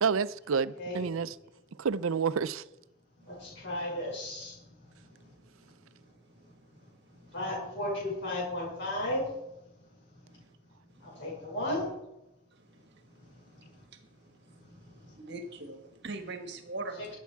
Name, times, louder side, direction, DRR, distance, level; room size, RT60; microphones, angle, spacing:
voice 1, 0.0-1.4 1.8-2.6, right 6 dB, 80° right, 0.5 m, -29 dB
voice 2, 3.3-4.5 7.3-9.3 11.0-11.9 16.9-17.2, left 1 dB, 60° left, 5.8 m, -34 dB
voice 3, 15.2-17.1, right 2 dB, 55° right, 1.6 m, -40 dB
21.0 x 8.4 x 4.6 m
head